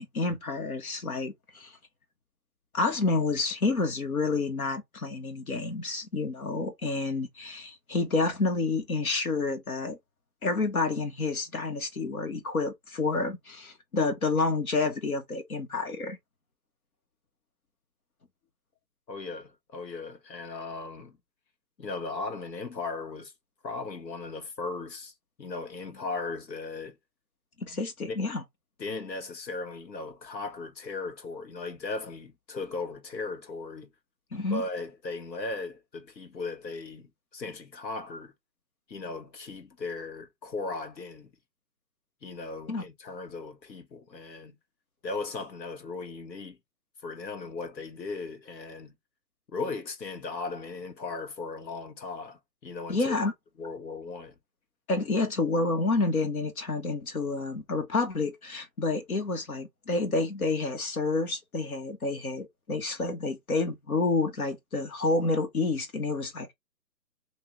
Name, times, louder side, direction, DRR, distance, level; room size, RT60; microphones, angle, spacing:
voice 1, 0.0-1.7 2.7-10.0 10.4-16.2 27.6-28.4 34.3-34.6 42.7-42.8 52.9-53.3 54.9-66.5, left 3 dB, 60° left, 1.5 m, -29 dB
voice 2, 19.1-21.2 21.8-23.3 23.6-25.1 25.4-27.0 28.1-28.2 28.8-33.9 34.4-38.3 38.9-41.3 42.2-44.6 45.0-46.6 47.0-49.0 49.5-53.2 53.6-54.4, left 3 dB, 85° left, 1.5 m, -37 dB
3.7 x 2.8 x 3.0 m
hypercardioid pair, 165°, 50 cm